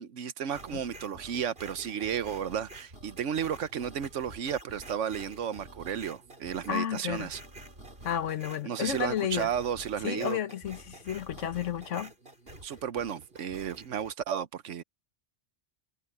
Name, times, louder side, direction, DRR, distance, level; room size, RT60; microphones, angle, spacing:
voice 1, 0.0-7.4 8.6-10.4 12.6-14.8, right 8 dB, 85° right, 1.2 m, -33 dB
sound 1, 0.5-14.1, right 1 dB, 50° right, 5.1 m, -49 dB
voice 2, 6.7-7.3 8.0-9.5 10.0-12.1, left 10 dB, 85° left, 1.4 m, -32 dB
omnidirectional pair, 1.2 m